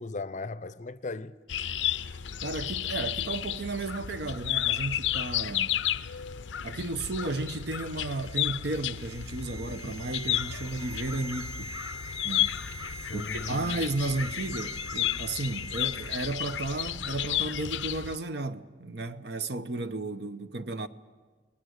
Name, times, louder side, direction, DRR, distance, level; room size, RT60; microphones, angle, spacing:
voice 1, 0.0-1.4 13.0-13.7, left 3 dB, 40° left, 0.6 m, -37 dB
sound 1, 1.5-18.2, left 11 dB, 85° left, 0.6 m, -32 dB
voice 2, 2.4-5.8 6.6-11.7 12.2-12.6 13.1-20.9, right 2 dB, 60° right, 0.9 m, -33 dB
sound 2, 7.9-16.8 17.1-17.2, equal, 30° right, 1.7 m, -44 dB
29.5 x 20.0 x 6.6 m
head